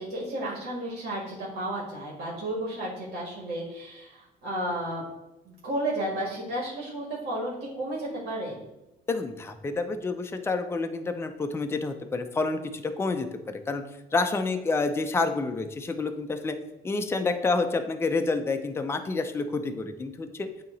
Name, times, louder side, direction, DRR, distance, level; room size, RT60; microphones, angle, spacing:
voice 1, 0.0-5.0 5.4-8.6, right 1 dB, 65° right, -4 dB, 2.0 m, -33 dB
voice 2, 9.1-13.8 14.1-16.6 16.8-20.5, left 3 dB, 15° left, 6 dB, 0.5 m, -28 dB
8.6 x 2.9 x 3.9 m, 0.94 s
cardioid pair, 110°, 17 cm